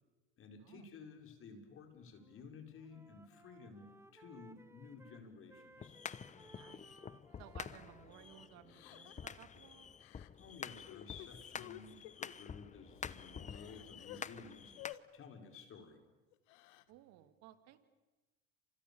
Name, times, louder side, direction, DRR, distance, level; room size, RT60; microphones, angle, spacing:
voice 1, 0.4-6.0 10.4-16.0, left 5 dB, 45° left, 5 dB, 5.2 m, -54 dB
Wind instrument woodwind instrument, 2.0-2.4 2.7-9.3, right 2 dB, 10° right, 1.7 m, -63 dB
sound 1, 5.8-14.9, left 7 dB, 25° left, 0.9 m, -49 dB
voice 2, 6.4-7.0 7.4-10.0 16.9-17.8, right 13 dB, 65° right, 11 dB, 2.3 m, -58 dB
Crying sobbing, 6.9-7.0 7.5-7.7 8.7-9.3 10.0-10.3 10.7-12.3 12.9-13.0 13.3-14.3 14.8-15.0 16.3-16.9, left 16 dB, 70° left, 1.5 m, -53 dB
30.0 x 26.5 x 7.2 m, 1.2 s
hypercardioid pair, 85°, 29 cm